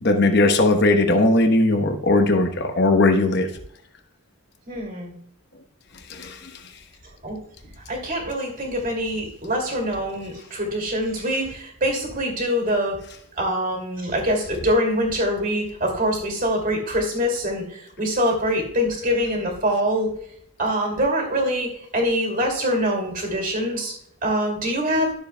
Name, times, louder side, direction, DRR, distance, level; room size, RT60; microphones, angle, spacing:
voice 1, 0.0-3.5 6.1-6.4, left 2 dB, 50° left, 5 dB, 1.0 m, -18 dB
voice 2, 4.7-5.1 7.2-7.4 7.9-13.0 13.4-20.1 20.6-23.9 24.2-25.1, equal, 40° right, 2 dB, 2.5 m, -24 dB
13.0 x 7.2 x 2.2 m, 0.70 s
head